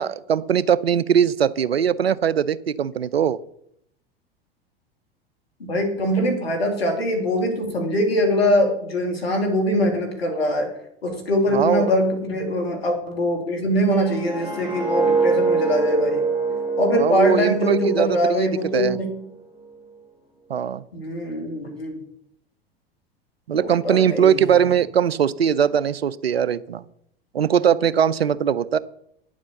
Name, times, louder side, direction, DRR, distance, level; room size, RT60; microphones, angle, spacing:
voice 1, 0.0-3.4 11.5-11.9 16.9-19.0 20.5-20.8 23.5-26.8 27.3-28.8, right 8 dB, 90° right, 19 dB, 0.6 m, -20 dB
voice 2, 5.6-10.7 11.0-16.2 16.8-19.2 20.9-22.0 23.5-24.5, left 1 dB, 85° left, 3 dB, 3.0 m, -22 dB
sound 1, 13.9-19.0 19.3-19.6, right 4 dB, 5° left, 4.0 m, -24 dB
10.0 x 7.4 x 7.0 m, 0.72 s
hypercardioid pair, 85°, 30 cm